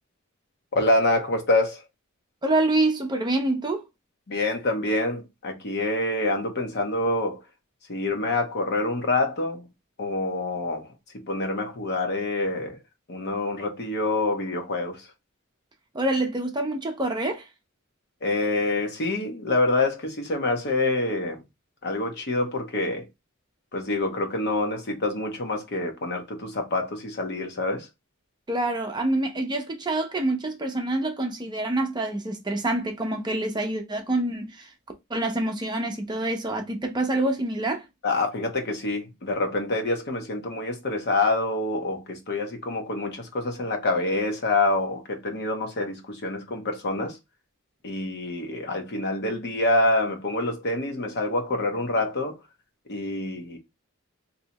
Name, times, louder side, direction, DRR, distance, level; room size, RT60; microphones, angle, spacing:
voice 1, 0.7-1.8 4.3-7.4 7.9-9.7 10.0-12.8 13.1-15.1 18.2-21.4 21.8-23.1 23.7-27.9 38.0-47.2 47.8-52.4 52.9-53.6, left 2 dB, 55° left, 0.9 m, -26 dB
voice 2, 2.4-3.9 15.9-17.5 28.5-34.7 35.1-37.9, right 2 dB, 20° right, 0.6 m, -26 dB
3.3 x 2.7 x 2.8 m
head